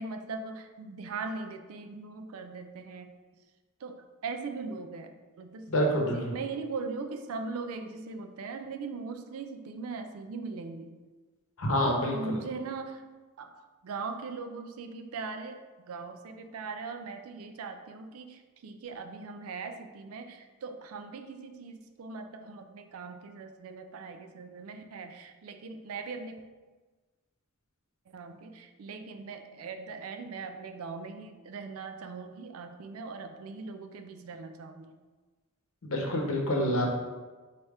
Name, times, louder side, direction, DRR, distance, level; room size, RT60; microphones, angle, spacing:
voice 1, 0.0-3.1 3.8-5.7 6.1-10.9 11.8-13.0 13.4-13.5 13.8-26.4 28.1-35.0, right 4 dB, 75° right, 7 dB, 0.4 m, -40 dB
voice 2, 5.7-6.4 11.6-12.4 35.8-36.9, equal, 70° left, 0 dB, 0.8 m, -27 dB
4.7 x 2.8 x 3.3 m, 1.3 s
head